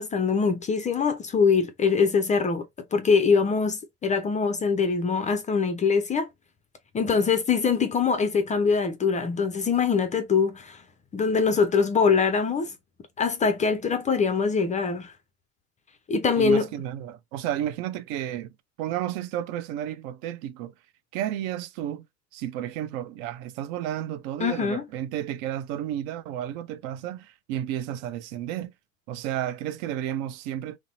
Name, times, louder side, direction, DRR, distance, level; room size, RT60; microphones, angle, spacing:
voice 1, 0.0-2.6 2.9-6.3 6.9-10.8 11.1-12.7 13.2-15.1 16.1-16.7 24.4-24.8, left 5 dB, 20° left, 0.3 m, -23 dB
voice 2, 16.4-20.7 21.1-22.1 22.3-28.7 29.1-30.8, right 11 dB, 60° right, 0.5 m, -32 dB
2.7 x 2.0 x 2.7 m
hypercardioid pair, 85°, 39 cm